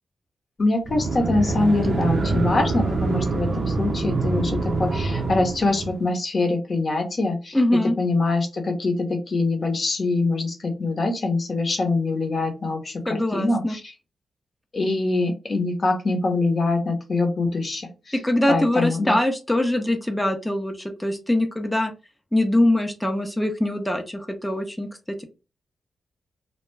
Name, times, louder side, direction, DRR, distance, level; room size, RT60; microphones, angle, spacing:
voice 1, 0.6-7.6 8.0-13.8 14.7-18.1 18.5-19.1, left 2 dB, 55° left, 4 dB, 0.8 m, -24 dB
sound 1, 0.9-6.1, right 3 dB, 60° right, 0.6 m, -25 dB
voice 2, 7.5-8.0 13.1-13.8 18.1-21.9 22.3-25.2, left 1 dB, 10° left, 4 dB, 0.5 m, -23 dB
2.2 x 2.2 x 3.1 m, 0.30 s
supercardioid pair, 45°, 0 cm